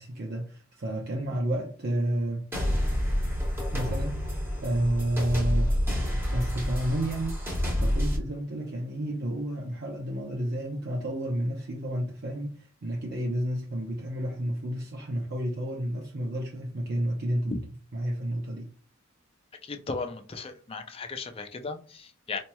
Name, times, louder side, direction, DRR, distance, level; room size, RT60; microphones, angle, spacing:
voice 1, 0.0-2.5 3.7-5.8 6.3-17.6 17.9-18.7, right 1 dB, 55° right, 0.6 m, -31 dB
sound 1, 2.5-8.2, equal, 10° right, 1.0 m, -28 dB
voice 2, 19.6-22.4, left 4 dB, 30° left, 0.5 m, -36 dB
4.2 x 3.0 x 2.2 m
head